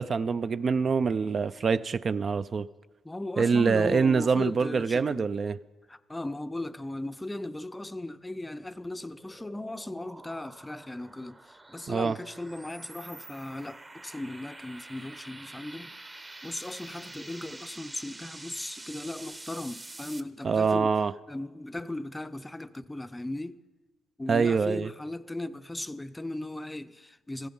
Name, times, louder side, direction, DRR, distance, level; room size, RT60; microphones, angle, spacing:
voice 1, 0.0-2.7 3.4-5.6 11.9-12.2 20.4-21.1 24.3-24.9, right 5 dB, 45° right, 0.4 m, -25 dB
voice 2, 3.0-5.2 5.9-20.9 21.3-23.6 24.2-27.5, left 1 dB, 10° left, 0.5 m, -37 dB
sound 1, 8.2-20.2, right 2 dB, 20° right, 0.9 m, -47 dB
15.5 x 13.5 x 5.4 m
cardioid pair, 90°, 0 cm